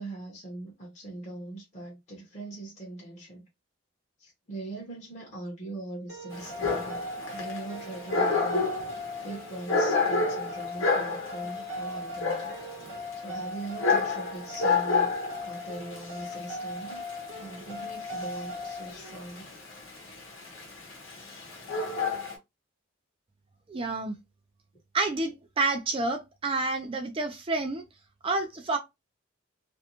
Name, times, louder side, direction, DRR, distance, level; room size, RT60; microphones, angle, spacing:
voice 1, 0.0-3.5 4.2-8.7 9.2-12.5 12.9-15.1 15.4-17.1 17.4-19.5, right 2 dB, 35° left, 0.8 m, -41 dB
sound 1, 6.1-18.9, left 2 dB, 65° right, 0.8 m, -38 dB
Dog, 6.3-22.3, left 4 dB, 75° left, 0.9 m, -30 dB
voice 2, 23.7-24.2 24.9-27.8 28.2-28.8, right 3 dB, 25° right, 0.3 m, -29 dB
2.5 x 2.1 x 2.8 m
head